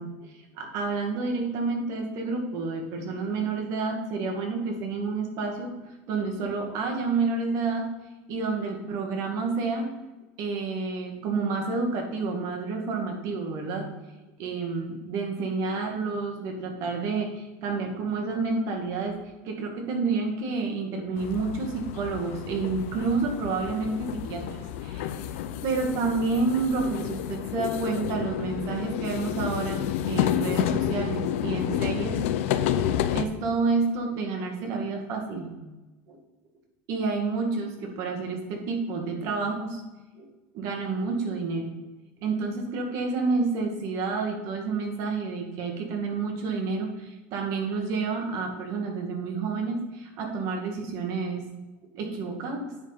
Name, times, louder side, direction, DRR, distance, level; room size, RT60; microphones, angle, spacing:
voice 1, 0.0-7.9 8.3-9.9 10.4-13.9 14.4-19.2 19.4-25.2 25.6-32.2 33.1-35.5 36.1-36.2 36.9-39.8 40.2-40.3 40.5-41.7 42.2-51.5 51.9-52.7, right 4 dB, 55° right, 2 dB, 2.1 m, -29 dB
sound 1, 21.2-33.2, left 10 dB, 80° left, 0.6 m, -30 dB
9.6 x 5.0 x 5.1 m, 1.1 s
supercardioid pair, 135°, 7 cm